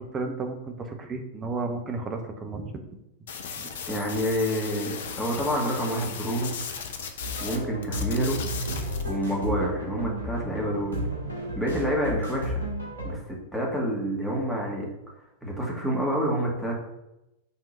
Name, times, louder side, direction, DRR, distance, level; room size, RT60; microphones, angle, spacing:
voice 1, 0.0-2.8 3.6-3.7, right 3 dB, 20° right, 5 dB, 0.9 m, -33 dB
sound 1, 3.3-7.6 7.8-9.0, left 6 dB, 60° left, 0.8 m, -36 dB
voice 2, 3.9-6.5 7.4-8.5 9.0-11.0 11.5-12.6 13.0-14.9 15.4-16.8, equal, ahead, -3 dB, 1.8 m, -28 dB
sound 2, 7.2-13.1, equal, 80° right, 1.9 m, -32 dB
5.7 x 3.7 x 5.4 m, 0.91 s
figure-of-eight pair, 95°, 0 cm